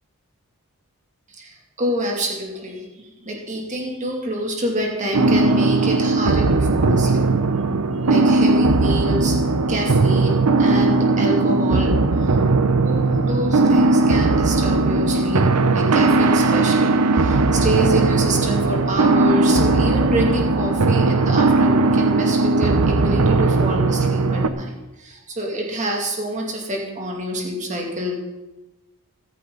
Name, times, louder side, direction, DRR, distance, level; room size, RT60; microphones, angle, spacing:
voice 1, 1.4-7.3 8.0-9.4 9.7-12.3 12.8-15.4 15.7-24.7 25.0-28.1, right 1 dB, 35° right, 0 dB, 2.6 m, -27 dB
sound 1, 5.1-24.5, right 3 dB, 90° right, 0.8 m, -18 dB
15.0 x 14.0 x 4.0 m, 1.0 s
head